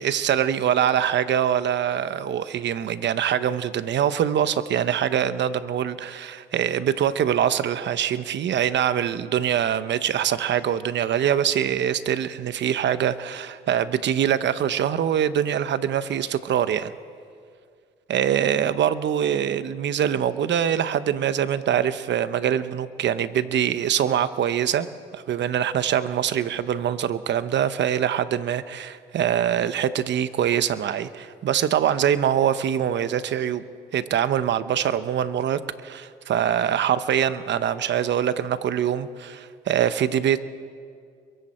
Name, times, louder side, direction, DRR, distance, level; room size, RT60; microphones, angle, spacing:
voice 1, 0.0-16.9 18.1-33.6 33.9-40.4, right 9 dB, 65° right, 13 dB, 0.9 m, -24 dB
28.5 x 22.5 x 4.4 m, 2.2 s
cardioid pair, 90°, 20 cm